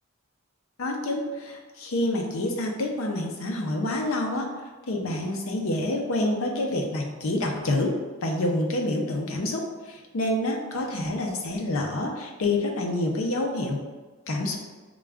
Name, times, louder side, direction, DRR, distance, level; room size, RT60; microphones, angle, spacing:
voice 1, 0.8-4.5 4.9-8.0 8.2-13.8 14.3-14.6, left 1 dB, 70° left, 2 dB, 0.6 m, -27 dB
3.5 x 2.3 x 3.4 m, 1.3 s
head